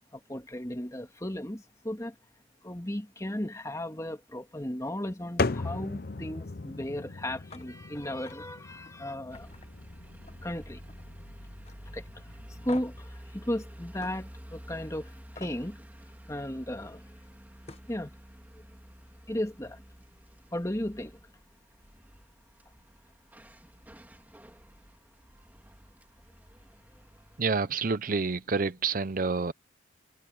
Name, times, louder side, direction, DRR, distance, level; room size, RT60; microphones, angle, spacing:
voice 1, 0.1-2.1 2.6-9.5 10.4-10.8 11.9-12.0 12.6-15.1 15.4-15.8 16.3-17.0 17.9-18.1 19.3-19.8 20.5-21.1, left 1 dB, 15° left, 2.1 m, -35 dB
sound 1, 5.4-13.1, left 3 dB, 50° left, 0.7 m, -38 dB
sound 2, 7.5-7.7 8.0-8.4 8.8-8.9 9.3-10.5 10.8-11.2 11.6-11.8 12.7-13.0 14.0-14.1 15.4-15.6 17.2-17.3 17.6-17.9, left 3 dB, 30° left, 1.0 m, -47 dB
sound 3, 9.3-27.4, equal, 10° right, 3.5 m, -50 dB
voice 2, 27.4-29.5, right 4 dB, 45° right, 0.6 m, -28 dB
head